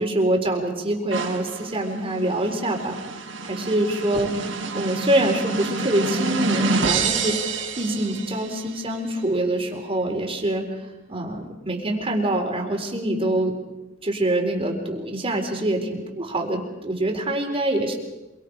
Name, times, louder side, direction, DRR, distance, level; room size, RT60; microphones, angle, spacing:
voice 1, 0.0-3.0 3.4-4.3 4.7-10.6 11.1-13.6 14.0-17.9, right 1 dB, 30° right, 2 dB, 4.0 m, -25 dB
sound 1, 1.1-8.7, right 3 dB, 85° right, 4.8 m, -28 dB
27.0 x 23.5 x 5.1 m, 1.1 s
head